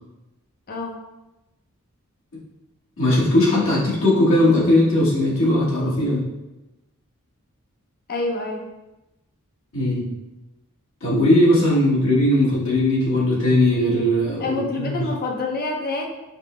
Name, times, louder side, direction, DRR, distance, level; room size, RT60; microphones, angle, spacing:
voice 1, 3.0-6.2 9.7-10.1 11.0-15.1, left 1 dB, 65° left, -6 dB, 1.2 m, -19 dB
voice 2, 8.1-8.6 14.4-16.1, left 3 dB, 45° left, 1 dB, 0.6 m, -27 dB
5.2 x 2.0 x 3.0 m, 1.0 s
head